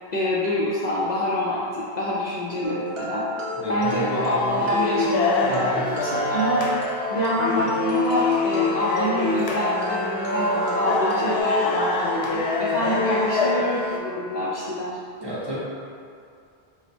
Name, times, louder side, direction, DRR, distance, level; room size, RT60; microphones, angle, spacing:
voice 1, 0.1-3.3 3.7-6.6 7.1-15.0, left 1 dB, 55° left, -7 dB, 0.5 m, -26 dB
sound 1, 2.6-11.4, right 1 dB, 70° right, 0.9 m, -31 dB
sound 2, 3.8-14.0, left 3 dB, 80° left, 0.8 m, -25 dB
voice 2, 15.2-15.6, equal, 25° right, -9 dB, 0.7 m, -31 dB
4.2 x 2.2 x 4.2 m, 2.4 s
omnidirectional pair, 1.1 m